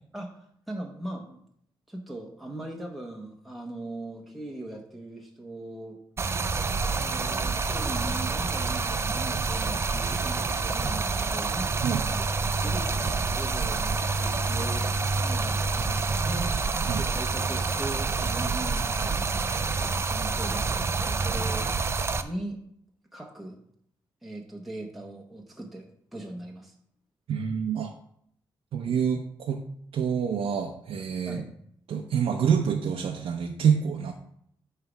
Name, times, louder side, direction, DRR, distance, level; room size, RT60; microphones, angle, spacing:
voice 1, 0.1-1.4 1.9-6.0 6.8-11.9 12.6-14.9 15.1-16.5 17.0-19.5 19.7-21.7 22.2-22.6 23.1-23.6 24.2-26.7 31.2-31.5, right 1 dB, ahead, -1 dB, 1.0 m, -39 dB
Stream, 6.2-22.2, right 4 dB, 30° right, 0.4 m, -27 dB
voice 2, 27.3-27.9 28.7-29.6 29.9-31.4 31.9-34.1, right 7 dB, 80° right, 1 dB, 0.7 m, -27 dB
9.0 x 3.3 x 6.0 m, 0.69 s
wide cardioid pair, 135°, 9 cm